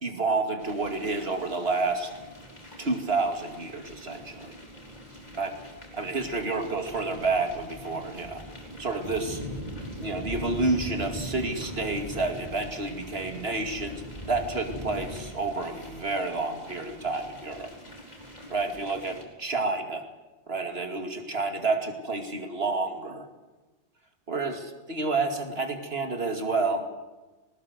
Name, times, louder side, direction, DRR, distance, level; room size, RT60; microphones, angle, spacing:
voice 1, 0.0-2.1 2.8-4.5 5.3-5.5 5.9-8.4 8.8-9.4 10.0-17.7 18.5-20.0 20.5-23.3 24.3-26.9, right 3 dB, 60° right, 5 dB, 2.7 m, -29 dB
sound 1, 0.6-19.2, equal, 35° left, 4.1 m, -41 dB
20.0 x 19.0 x 8.0 m, 1.2 s
omnidirectional pair, 1.2 m